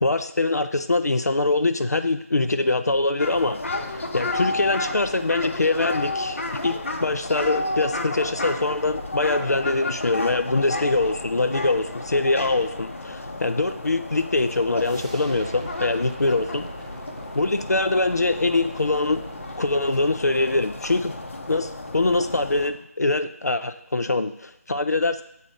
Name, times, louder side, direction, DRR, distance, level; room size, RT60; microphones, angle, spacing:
voice 1, 0.0-3.6 3.9-6.8 7.0-16.7 17.3-19.2 19.6-21.2 21.5-25.2, left 2 dB, 90° left, 10 dB, 0.4 m, -23 dB
sound 1, 3.2-22.7, left 2 dB, 55° left, 0.7 m, -32 dB
sound 2, 14.7-20.3, right 2 dB, 25° right, 0.3 m, -42 dB
7.4 x 2.7 x 4.9 m, 0.76 s
figure-of-eight pair, 165°, 8 cm